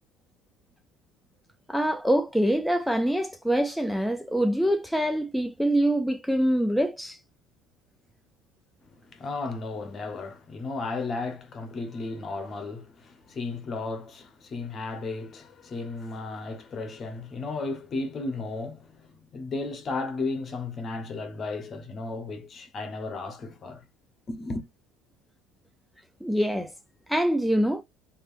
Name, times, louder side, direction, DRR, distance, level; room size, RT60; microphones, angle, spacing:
voice 1, 1.7-7.2 26.2-26.7 27.1-27.8, equal, ahead, 0.5 m, -25 dB
voice 2, 8.8-23.8 24.3-24.7, left 3 dB, 35° left, 1.1 m, -34 dB
3.3 x 2.8 x 2.5 m
supercardioid pair, 95°, 0 cm